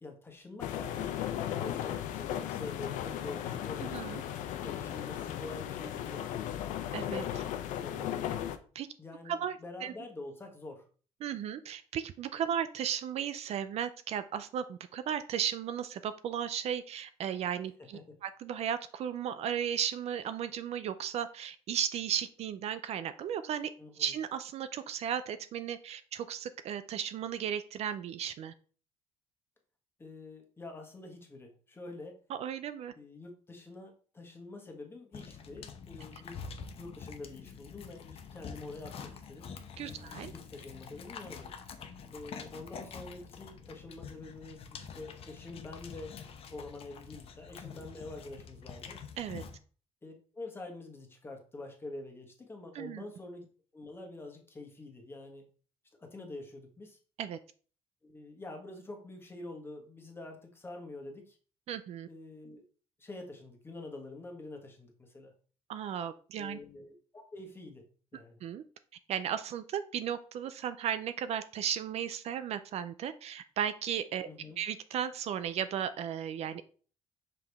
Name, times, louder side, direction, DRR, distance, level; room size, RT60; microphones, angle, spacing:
voice 1, 0.0-4.2 4.6-6.7 9.0-10.9 17.8-18.1 23.8-24.1 30.0-32.2 32.9-36.4 36.8-39.5 39.8-41.5 42.1-46.1 46.5-49.0 50.0-53.5 53.7-55.4 56.0-57.0 58.0-61.4 62.1-62.6 63.0-65.3 66.4-67.8 68.1-68.4 74.2-74.6, left 2 dB, 20° left, 3 dB, 1.3 m, -46 dB
sound 1, 0.6-8.6, left 11 dB, 85° left, 0.6 m, -36 dB
voice 2, 3.8-4.2 6.9-7.4 8.7-8.9 9.3-9.9 11.2-23.7 24.0-28.5 32.3-32.9 39.8-40.3 49.2-49.4 52.7-53.0 57.2-57.4 61.7-62.1 65.7-66.6 68.4-68.6 69.1-74.3 74.6-76.7, right 9 dB, 55° right, 12 dB, 0.4 m, -35 dB
sound 2, 35.1-49.6, left 6 dB, 50° left, 0.8 m, -46 dB
5.7 x 5.0 x 3.5 m, 0.41 s
cardioid pair, 135°, 13 cm